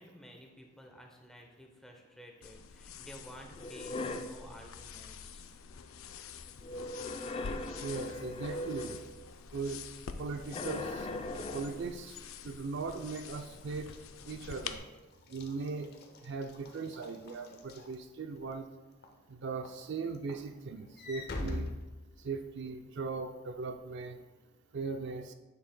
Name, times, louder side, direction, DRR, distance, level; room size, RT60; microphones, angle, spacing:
voice 1, 0.0-5.5, equal, ahead, 1 dB, 0.7 m, -53 dB
sound 1, 2.4-14.8, left 6 dB, 90° left, 0.4 m, -47 dB
sound 2, 3.5-4.4 6.6-9.1 10.5-11.9, left 2 dB, 25° left, 0.4 m, -39 dB
voice 2, 7.8-9.0 9.5-9.8 10.2-11.1 11.3-12.1 12.4-13.9 14.3-14.8 15.3-15.9 16.2-18.7 19.3-21.7 22.2-24.2 24.7-25.3, right 4 dB, 60° right, 7 dB, 0.4 m, -39 dB
Walk footsteps / Slam, 12.8-18.5 19.0-19.3 19.7-22.7, left 2 dB, 50° left, 0.8 m, -44 dB
9.8 x 6.9 x 2.2 m, 1.2 s
head